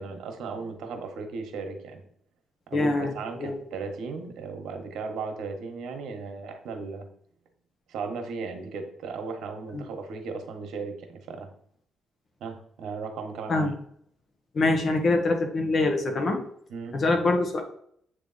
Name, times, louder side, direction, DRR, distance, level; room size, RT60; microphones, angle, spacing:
voice 1, 0.0-2.0 2.7-7.0 7.9-11.5 12.4-13.7 16.7-17.0, right 4 dB, 75° right, 5 dB, 1.3 m, -36 dB
voice 2, 2.7-3.6 9.7-9.8 13.5-13.7 14.5-16.4 16.9-17.6, left 2 dB, 45° left, 4 dB, 1.4 m, -24 dB
8.1 x 3.4 x 4.1 m, 0.65 s
cardioid pair, 90°, 0 cm